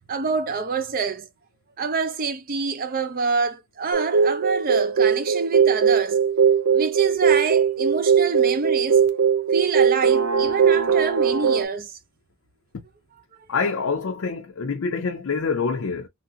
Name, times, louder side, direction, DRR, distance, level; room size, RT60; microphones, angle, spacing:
voice 1, 0.1-1.3 1.8-6.2 6.7-9.0 9.5-12.0, right 4 dB, 40° right, 0.5 m, -26 dB
sound 1, 3.9-11.6, right 6 dB, 90° right, 0.5 m, -20 dB
voice 2, 13.5-16.1, left 5 dB, 60° left, 0.5 m, -26 dB
3.1 x 2.5 x 2.7 m
head